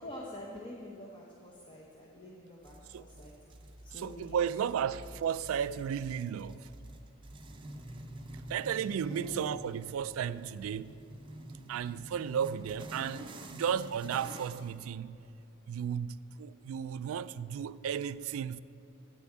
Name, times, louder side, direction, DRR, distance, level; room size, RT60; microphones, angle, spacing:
voice 1, 0.0-3.5 3.8-4.5 4.8-5.0 9.1-9.6, left 1 dB, 25° left, 0.8 m, -46 dB
sound 1, 2.6-14.8, right 1 dB, 25° right, 0.6 m, -48 dB
voice 2, 3.9-6.7 8.5-10.9 11.7-15.2 15.7-18.6, right 8 dB, 75° right, 0.3 m, -34 dB
8.8 x 7.0 x 7.2 m
head